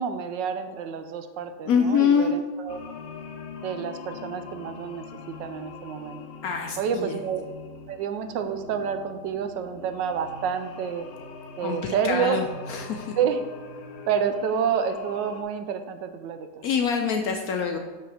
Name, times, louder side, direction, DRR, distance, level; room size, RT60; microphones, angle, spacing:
voice 1, 0.0-2.8 3.6-6.2 6.8-7.4 7.9-11.1 11.6-12.4 13.2-13.4 14.1-16.6, right 7 dB, 80° right, 8 dB, 1.3 m, -29 dB
voice 2, 1.7-2.3 6.4-7.2 11.6-13.2 16.6-17.8, left 6 dB, 70° left, 4 dB, 0.9 m, -25 dB
sound 1, 2.7-15.4, left 4 dB, 85° left, 1.4 m, -42 dB
6.0 x 5.7 x 4.8 m, 1.3 s
omnidirectional pair, 2.0 m